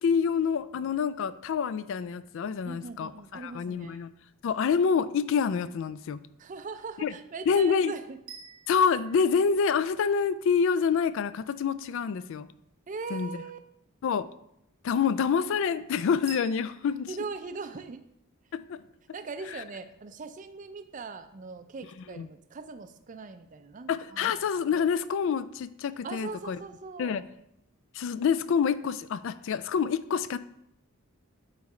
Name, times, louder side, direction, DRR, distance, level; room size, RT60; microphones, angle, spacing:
voice 1, 0.0-4.1 4.4-6.2 7.0-7.1 7.5-7.9 8.7-12.5 13.1-13.3 14.0-14.3 14.8-17.1 18.5-18.8 19.5-19.6 22.1-22.3 23.9-26.6 27.0-27.2 27.9-30.4, left 6 dB, 60° left, 16 dB, 0.3 m, -27 dB
voice 2, 2.7-4.1 6.4-8.2 12.9-13.6 17.1-18.1 19.1-24.4 26.0-27.3, right 4 dB, 35° right, 10 dB, 0.4 m, -40 dB
sound 1, 8.3-10.4 16.3-17.0, right 7 dB, 80° right, 1.2 m, -49 dB
8.2 x 3.2 x 4.8 m, 0.78 s
head